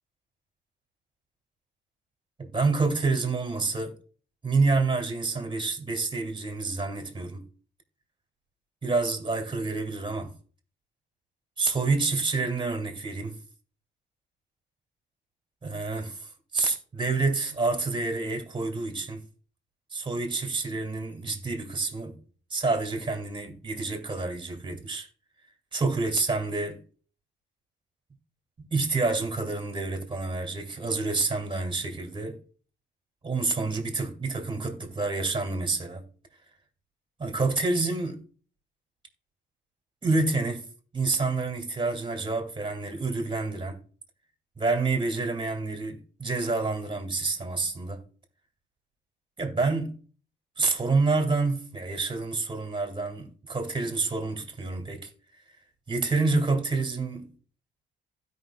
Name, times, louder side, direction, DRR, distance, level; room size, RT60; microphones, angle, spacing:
voice 1, 2.4-4.0 4.4-7.4 8.8-10.3 11.6-13.4 15.6-19.2 19.9-22.2 22.5-25.1 25.7-26.8 28.6-32.4 33.2-36.1 37.2-38.2 40.0-40.7 40.9-43.8 44.6-48.0 49.4-50.0 50.6-55.1 55.9-57.3, right 3 dB, 25° right, 2.3 m, -28 dB
16.0 x 5.4 x 2.3 m
cardioid pair, 90°, 20 cm